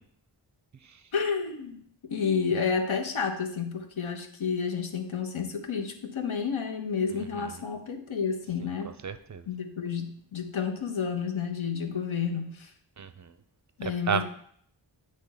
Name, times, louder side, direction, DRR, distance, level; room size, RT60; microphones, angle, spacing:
voice 1, 1.1-8.9 9.5-12.7 13.8-14.2, left 6 dB, 80° left, 3 dB, 0.9 m, -30 dB
voice 2, 7.1-7.6 8.8-9.5 13.0-13.3 13.8-14.2, right 7 dB, 40° right, 12 dB, 0.4 m, -34 dB
8.3 x 3.2 x 3.8 m, 0.64 s
wide cardioid pair, 55°, 48 cm